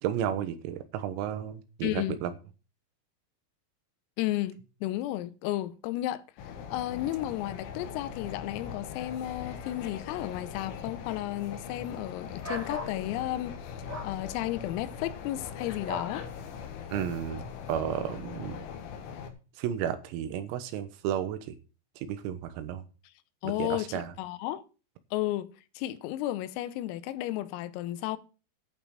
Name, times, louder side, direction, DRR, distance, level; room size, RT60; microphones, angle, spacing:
voice 1, 0.0-2.3 16.9-17.4 17.7-18.7 19.6-21.6 22.0-22.8 23.5-24.1, right 10 dB, 90° right, 3.9 m, -33 dB
voice 2, 1.8-2.2 4.2-6.2 6.7-13.8 14.0-16.2 23.4-24.6 25.1-28.2, left 15 dB, 90° left, 3.5 m, -33 dB
sound 1, 6.4-19.3, left 7 dB, 70° left, 3.8 m, -41 dB
sound 2, 12.4-13.0 13.9-14.1 15.8-16.1, equal, 5° right, 1.1 m, -37 dB
11.5 x 6.9 x 6.4 m
omnidirectional pair, 6.0 m